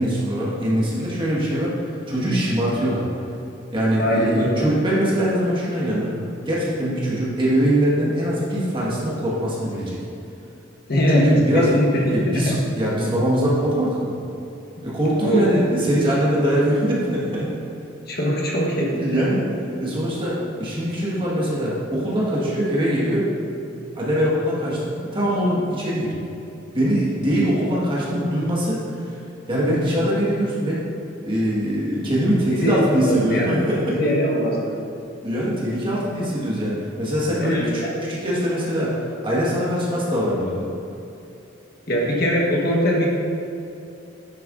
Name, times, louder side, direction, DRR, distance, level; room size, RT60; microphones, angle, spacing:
voice 1, 0.0-1.7 2.1-3.1 3.7-6.2 6.4-10.0 11.1-14.2 14.8-17.6 18.9-19.4 19.8-23.3 23.9-26.1 26.7-29.2 29.5-30.8 31.2-34.0 35.2-40.6, equal, 25° right, -6 dB, 1.5 m, -22 dB
voice 2, 4.0-4.6 10.9-12.0 14.8-15.5 18.1-19.2 32.6-33.5 33.9-34.7 37.4-37.7 41.9-43.1, equal, 50° left, -3 dB, 1.3 m, -22 dB
9.7 x 6.8 x 2.6 m, 2.8 s
head